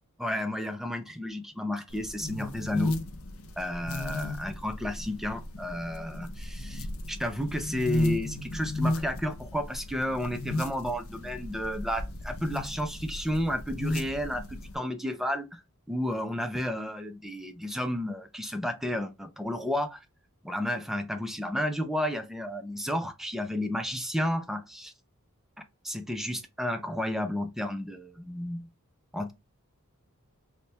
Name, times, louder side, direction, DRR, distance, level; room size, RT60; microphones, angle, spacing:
voice 1, 0.2-3.0 3.6-20.0 20.4-24.9 25.8-28.7 29.1-29.3, left 1 dB, ahead, 0.4 m, -32 dB
sound 1, 1.9-14.8, left 1 dB, 70° left, 0.6 m, -34 dB
4.1 x 2.1 x 3.3 m
head